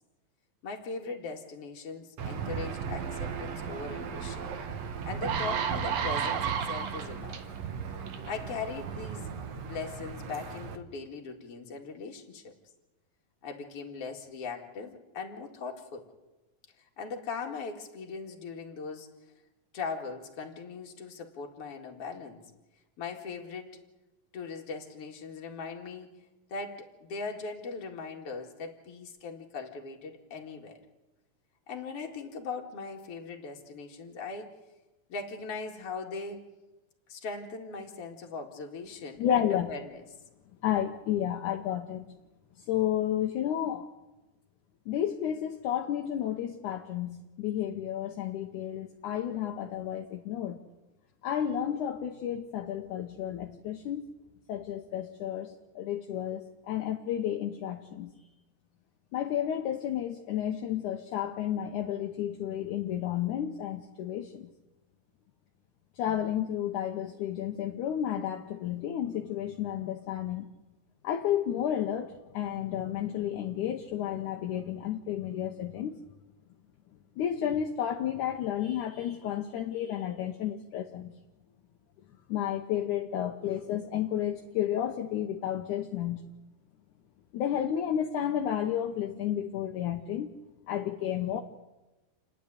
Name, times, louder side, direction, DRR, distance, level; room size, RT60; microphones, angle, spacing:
voice 1, 0.6-4.5 5.0-7.4 8.2-9.3 9.6-12.5 13.4-16.1 16.8-19.1 19.7-22.4 23.0-23.8 24.3-26.1 26.5-30.8 31.7-34.5 35.1-36.4 37.1-40.0, left 4 dB, 45° left, 2 dB, 2.7 m, -39 dB
Aircraft / Engine, 2.2-10.8, right 6 dB, 60° right, 1.9 m, -37 dB
sound 1, 4.5-4.6 5.0-7.4 8.1-8.3, right 7 dB, 80° right, 3.3 m, -32 dB
voice 2, 39.2-39.7 40.6-42.1 42.7-43.9 44.9-50.6 51.2-54.1 54.5-56.4 56.7-58.1 59.1-64.5 66.0-70.5 71.0-76.0 77.2-81.1 82.3-86.2 87.3-90.3 90.7-91.4, left 10 dB, 70° left, 4 dB, 2.2 m, -31 dB
29.0 x 10.0 x 9.8 m, 1.1 s
omnidirectional pair, 4.1 m